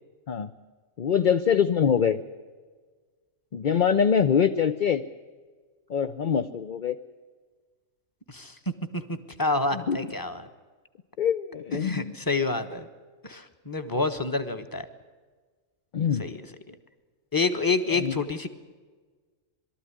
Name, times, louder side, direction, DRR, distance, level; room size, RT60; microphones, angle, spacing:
voice 1, 1.0-2.2 3.5-5.0 5.9-7.0 9.7-10.1 11.2-12.1 15.9-16.2 17.9-18.2, left 7 dB, 45° left, 8 dB, 0.7 m, -24 dB
voice 2, 8.9-10.5 11.8-12.9 13.2-14.9 16.2-16.8 17.3-18.5, left 3 dB, 15° left, 8 dB, 1.3 m, -28 dB
22.5 x 13.5 x 9.9 m, 1.5 s
omnidirectional pair, 1.4 m